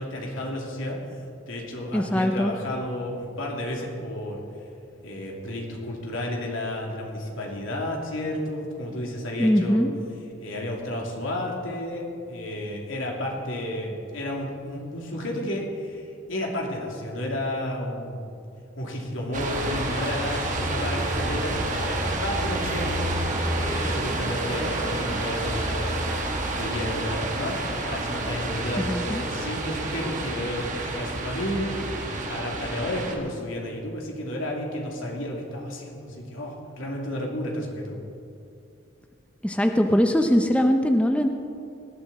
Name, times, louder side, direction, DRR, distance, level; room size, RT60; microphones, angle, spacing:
voice 1, 0.0-4.4 5.0-9.9 10.4-18.3 18.8-25.9 26.6-38.0, left 1 dB, 85° left, -1 dB, 2.8 m, -32 dB
voice 2, 1.9-2.5 9.4-9.9 28.8-29.2 39.4-41.3, equal, 5° left, 5 dB, 0.6 m, -21 dB
sound 1, 19.3-33.2, right 2 dB, 40° right, 1.5 m, -29 dB
18.5 x 13.0 x 4.2 m, 2.6 s
head